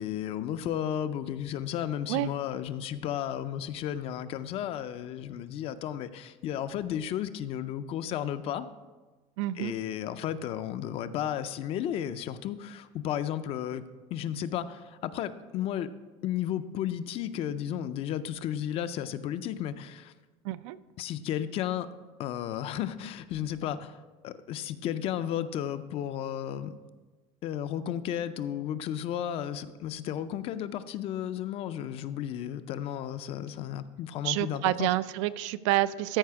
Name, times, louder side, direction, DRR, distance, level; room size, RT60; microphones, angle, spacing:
voice 1, 0.0-8.7 9.6-15.9 16.2-20.1 21.0-21.9 22.2-26.7 27.4-34.9, left 10 dB, 40° left, 13 dB, 0.4 m, -33 dB
voice 2, 9.4-9.7 20.4-20.8 34.2-36.2, right 16 dB, 90° right, 14 dB, 0.4 m, -28 dB
13.5 x 4.9 x 4.7 m, 1.3 s
cardioid pair, 160°, 15 cm